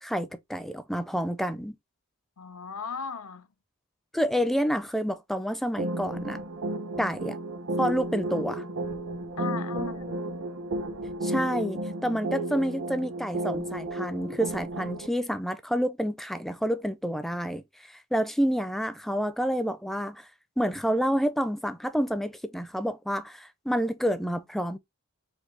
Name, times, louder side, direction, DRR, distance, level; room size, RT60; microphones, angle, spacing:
voice 1, 0.0-1.8 4.1-6.4 7.0-7.4 7.8-8.7 11.2-17.6 18.1-20.2 20.6-24.8, equal, ahead, 0.4 m, -28 dB
voice 2, 2.4-3.5 9.4-10.3, left 5 dB, 85° left, 0.6 m, -37 dB
sound 1, 5.8-15.1, right 1 dB, 80° right, 1.1 m, -33 dB
4.6 x 2.6 x 3.8 m
head